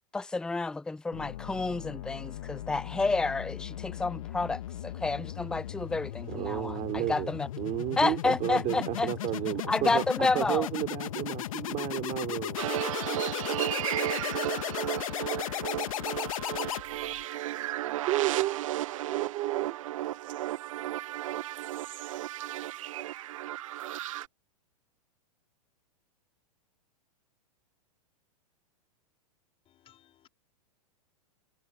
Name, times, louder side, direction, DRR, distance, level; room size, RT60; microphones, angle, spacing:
voice 1, 0.1-7.5 8.0-9.1 9.7-10.7, left 3 dB, 5° left, 0.5 m, -30 dB
sound 1, 1.1-17.2, left 13 dB, 60° left, 1.9 m, -37 dB
voice 2, 6.3-12.9 18.0-19.8, right 16 dB, 35° right, 4.1 m, -32 dB
sound 2, 12.6-24.3, right 14 dB, 60° right, 0.5 m, -34 dB
voice 3, 29.6-30.3, left 12 dB, 30° left, 4.6 m, -61 dB
figure-of-eight pair, 100°, 19 cm